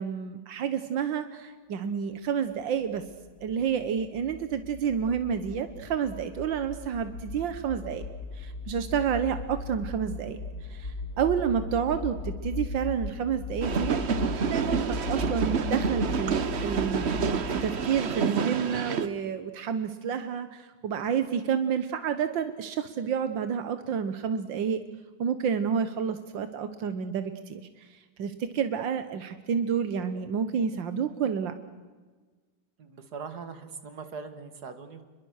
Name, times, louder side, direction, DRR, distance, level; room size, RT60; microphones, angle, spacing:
voice 1, 0.0-3.0 3.4-8.0 8.3-14.0 14.5-24.8 25.2-31.5, right 7 dB, 85° right, 10 dB, 1.8 m, -30 dB
sound 1, 2.9-18.3, left 3 dB, 35° left, 1.6 m, -37 dB
sound 2, 13.6-19.1, right 6 dB, 45° right, 1.0 m, -28 dB
voice 2, 32.8-35.0, right 5 dB, 60° right, 9 dB, 2.5 m, -41 dB
29.0 x 22.0 x 6.5 m, 1.4 s
omnidirectional pair, 2.0 m